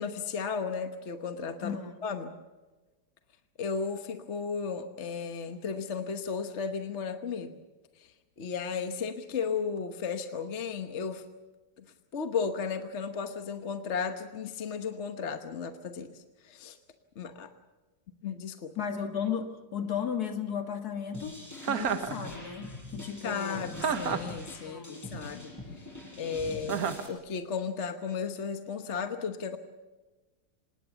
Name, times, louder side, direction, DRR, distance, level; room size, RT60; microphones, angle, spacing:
voice 1, 0.0-2.3 3.6-7.6 8.0-8.1 8.4-11.2 11.8-11.9 12.1-16.8 17.2-17.5 18.2-18.7 23.2-25.5 25.8-25.9 26.2-26.8 27.1-29.6, left 5 dB, 45° left, 7 dB, 1.3 m, -34 dB
voice 2, 1.6-2.1 18.8-21.4 21.7-23.8 24.6-25.1, left 7 dB, 60° left, 6 dB, 2.4 m, -35 dB
sound 1, 21.1-27.1, left 1 dB, 10° left, 7.6 m, -44 dB
Chuckle chortle, 21.6-22.1 23.8-24.4 26.7-27.1, right 7 dB, 60° right, 1.5 m, -30 dB
25.5 x 20.0 x 7.0 m, 1.2 s
omnidirectional pair, 1.9 m